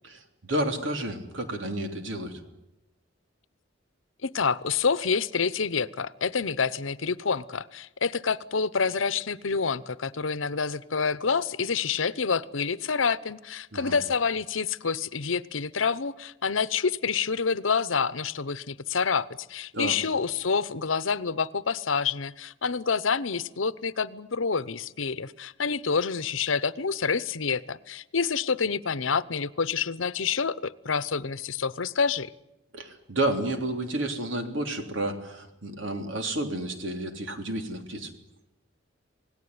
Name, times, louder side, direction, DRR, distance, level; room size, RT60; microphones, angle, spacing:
voice 1, 0.0-2.4 13.7-14.0 19.7-20.0 32.7-38.1, right 1 dB, 75° right, 6 dB, 3.3 m, -31 dB
voice 2, 4.2-32.3, left 5 dB, 90° left, 17 dB, 0.9 m, -28 dB
27.0 x 18.5 x 9.6 m, 0.90 s
head